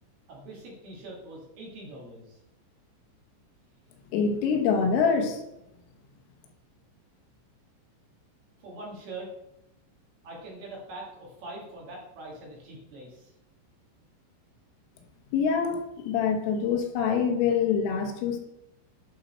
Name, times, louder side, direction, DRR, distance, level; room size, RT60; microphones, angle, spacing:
voice 1, 0.3-2.4 8.6-9.3 10.2-13.3, right 2 dB, 60° right, -3 dB, 3.3 m, -43 dB
voice 2, 4.1-5.4 15.3-18.4, left 6 dB, 80° left, 3 dB, 3.6 m, -25 dB
11.5 x 4.4 x 4.3 m, 0.85 s
omnidirectional pair, 5.8 m